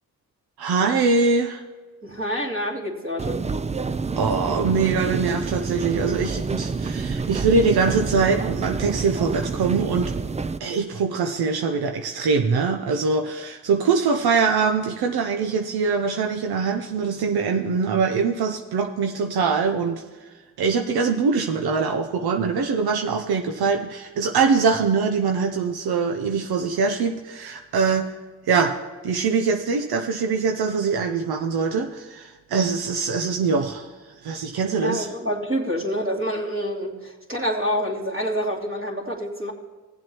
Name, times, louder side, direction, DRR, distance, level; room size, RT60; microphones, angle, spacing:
voice 1, 0.6-1.6 4.2-10.1 10.6-20.0 20.6-28.2 28.5-28.8 29.0-33.9 34.2-35.1, right 5 dB, 80° right, 4 dB, 0.8 m, -23 dB
voice 2, 2.0-3.4 34.8-39.5, equal, 35° right, -1 dB, 2.6 m, -27 dB
sound 1, 3.2-10.6, right 4 dB, 20° right, 0.4 m, -28 dB
17.0 x 7.6 x 3.0 m, 1.3 s
supercardioid pair, 50°, 37 cm